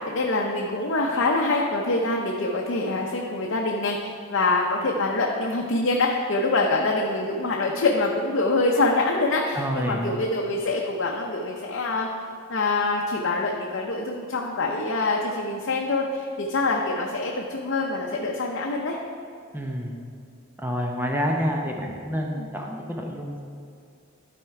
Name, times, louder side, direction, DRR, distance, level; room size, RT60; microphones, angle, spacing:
voice 1, 0.1-12.1 12.5-19.0 22.4-22.5, left 2 dB, 65° left, -1 dB, 0.7 m, -25 dB
voice 2, 9.5-10.1 19.5-19.9 20.6-23.4, equal, 10° right, 1 dB, 0.8 m, -28 dB
12.0 x 4.3 x 4.8 m, 2.4 s
head